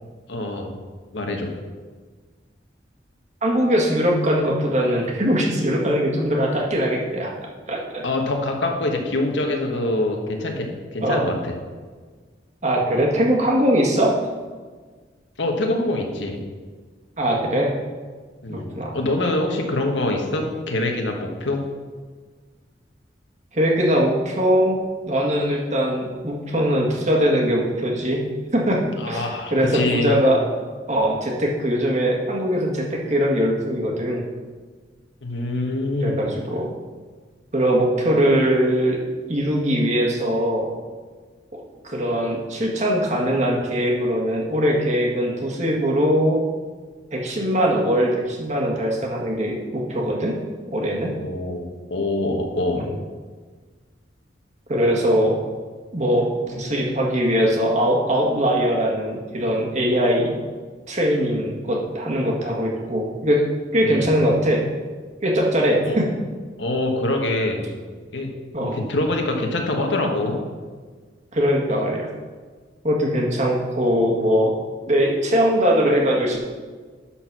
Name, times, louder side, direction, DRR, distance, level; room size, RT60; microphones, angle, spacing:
voice 1, 0.3-0.7 1.1-1.5 8.0-11.5 15.4-16.4 18.4-21.6 29.0-30.2 35.2-36.2 51.1-52.9 63.8-64.1 65.9-66.0 66.6-67.7 68.1-68.3 68.6-70.4, left 2 dB, 80° left, 2 dB, 1.5 m, -25 dB
voice 2, 3.4-7.3 7.7-8.0 11.0-11.2 12.6-14.1 17.2-17.7 18.5-19.0 23.5-24.8 25.1-28.2 28.5-30.4 30.9-34.3 36.0-36.7 37.5-39.0 39.3-40.7 41.5-41.6 41.8-46.4 47.1-50.3 50.7-51.1 52.7-52.9 54.7-55.4 55.9-60.3 60.9-63.4 63.7-64.6 65.2-66.1 68.5-68.8 71.3-72.1 72.8-74.5 74.9-76.4, equal, 40° right, -1 dB, 1.7 m, -21 dB
11.5 x 4.4 x 6.1 m, 1.5 s
head